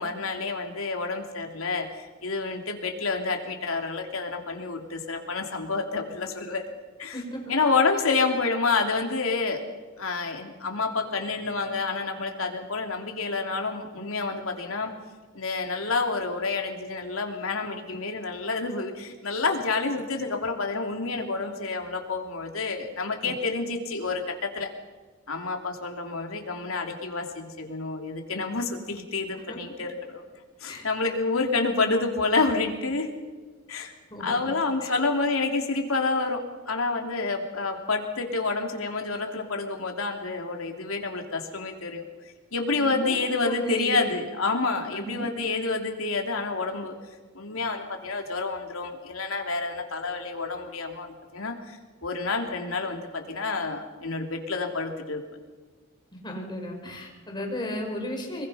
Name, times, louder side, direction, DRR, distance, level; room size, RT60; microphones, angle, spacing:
voice 1, 0.0-6.6 7.0-7.2 7.5-9.7 10.0-14.9 15.3-24.7 25.3-30.2 30.6-33.1 33.7-33.9 34.2-42.0 42.5-46.9 47.3-55.2, left 3 dB, 85° left, 3 dB, 3.1 m, -28 dB
voice 2, 7.1-7.5 23.2-23.3 29.5-29.6 30.7-30.8 34.1-34.5 34.8-34.9 42.8-44.0 44.9-45.3 56.2-58.5, equal, 20° left, 1 dB, 5.0 m, -34 dB
25.5 x 22.0 x 5.7 m, 1.4 s
head